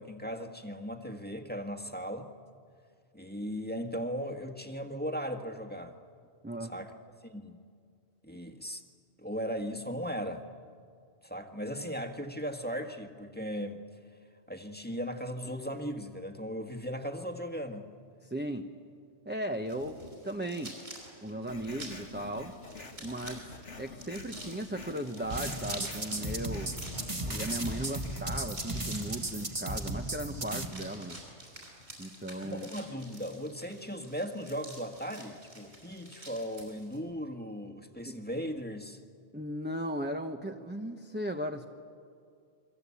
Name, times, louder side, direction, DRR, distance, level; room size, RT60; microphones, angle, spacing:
voice 1, 0.0-2.3 3.1-5.9 6.6-6.9 7.2-7.6 8.2-8.8 9.2-10.4 11.2-13.8 14.5-17.9 32.4-39.0, equal, 10° left, 5 dB, 1.6 m, -37 dB
voice 2, 18.2-18.7 19.2-20.8 21.2-22.5 23.0-26.7 27.3-31.2 32.0-32.7 38.1-38.2 39.3-41.6, right 1 dB, 10° right, 4 dB, 1.0 m, -37 dB
sound 1, 19.7-37.0, right 1 dB, 60° right, 6.9 m, -48 dB
sound 2, 21.5-28.4, left 3 dB, 85° left, 2.4 m, -47 dB
sound 3, 25.3-30.7, right 1 dB, 25° right, 1.8 m, -36 dB
29.0 x 23.5 x 8.5 m, 2.2 s
omnidirectional pair, 1.2 m